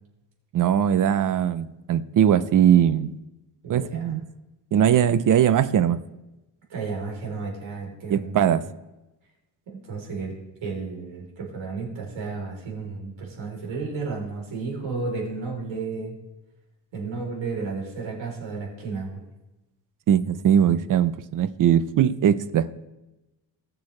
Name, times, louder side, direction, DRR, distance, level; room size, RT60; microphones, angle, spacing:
voice 1, 0.5-3.2 3.7-4.2 4.7-6.0 8.1-8.7 20.1-22.7, right 9 dB, 45° right, 13 dB, 0.5 m, -20 dB
voice 2, 3.6-4.1 6.7-8.6 9.7-10.3 10.6-16.2 16.9-19.2, right 4 dB, 80° right, -2 dB, 3.7 m, -32 dB
19.0 x 6.8 x 3.2 m, 1.0 s
wide cardioid pair, 150°, 45 cm